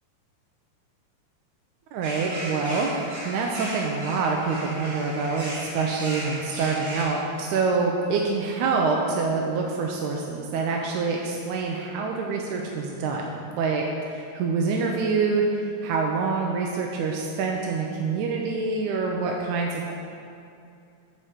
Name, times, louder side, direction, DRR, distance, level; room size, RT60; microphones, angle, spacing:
voice 1, 1.9-3.0 3.3-13.3 13.6-13.8 14.1-19.9, right 4 dB, 80° right, 0 dB, 1.9 m, -26 dB
sound 1, 2.0-7.0, right 1 dB, 40° right, 2.3 m, -36 dB
8.2 x 4.4 x 7.2 m, 2.5 s
omnidirectional pair, 3.7 m